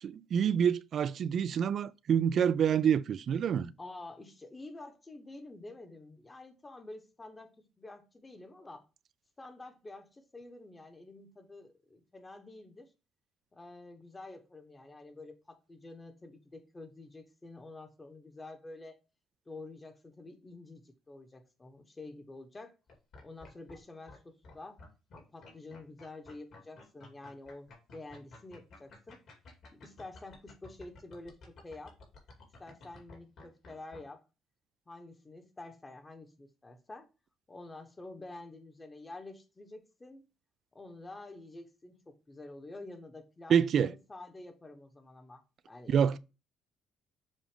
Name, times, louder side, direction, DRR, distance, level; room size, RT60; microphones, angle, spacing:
voice 1, 0.0-3.7 43.5-43.9 45.9-46.2, right 8 dB, 55° right, 0.3 m, -27 dB
voice 2, 3.8-8.8 9.4-12.9 13.5-18.9 19.5-22.7 23.2-24.8 25.1-29.2 29.7-32.0 32.6-34.2 34.9-37.1 37.5-40.2 40.7-46.0, left 2 dB, 20° left, 1.0 m, -49 dB
sound 1, 22.9-23.8 24.1-24.2 24.4-34.0, left 2 dB, 60° left, 2.3 m, -52 dB
7.4 x 2.5 x 5.1 m
cardioid pair, 115°, 0 cm